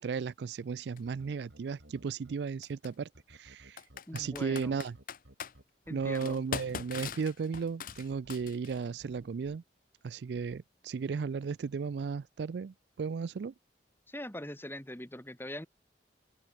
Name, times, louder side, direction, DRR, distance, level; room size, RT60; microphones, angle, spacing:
voice 1, 0.0-3.8 4.1-5.0 5.9-9.6 10.0-13.5, right 5 dB, 70° right, 0.4 m, -35 dB
Computer keyboard, 1.0-1.1 2.6-2.9 3.8-5.5 6.1-8.8, left 6 dB, 50° left, 0.7 m, -41 dB
sound 1, 1.1-2.4 3.1-7.2 7.9-9.6 10.3-10.6, right 1 dB, 85° right, 4.4 m, -56 dB
voice 2, 4.1-4.8 5.9-6.4 14.1-15.7, left 1 dB, 15° left, 2.9 m, -42 dB
head